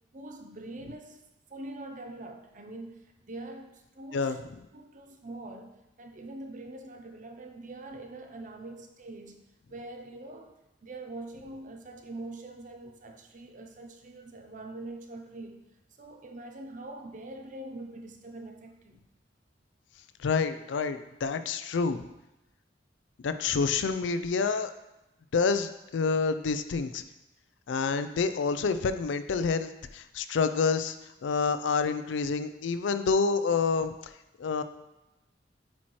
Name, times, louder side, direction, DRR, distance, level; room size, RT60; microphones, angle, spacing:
voice 1, 0.1-1.2 1.5-4.4 4.7-9.4 9.7-15.6 16.0-19.0, right 2 dB, 45° right, 4 dB, 0.6 m, -44 dB
voice 2, 20.2-22.0 23.2-24.7 25.3-27.0 27.7-31.0 31.2-33.9 34.4-34.6, left 5 dB, 80° left, 11 dB, 0.4 m, -28 dB
8.4 x 4.3 x 3.1 m, 0.95 s
head